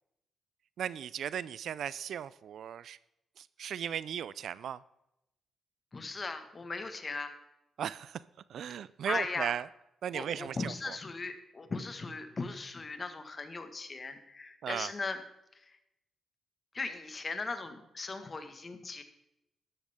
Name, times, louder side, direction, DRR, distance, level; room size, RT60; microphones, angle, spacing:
voice 1, 0.8-3.0 3.4-4.8 7.8-8.2 8.5-9.6 10.0-10.9 14.6-14.9, right 9 dB, 70° right, 18 dB, 0.4 m, -36 dB
voice 2, 5.9-7.3 9.0-9.5 10.1-15.2 15.5-15.8 16.7-19.0, left 3 dB, 35° left, 8 dB, 1.6 m, -38 dB
13.5 x 11.5 x 3.6 m, 0.85 s
cardioid pair, 95°, 0 cm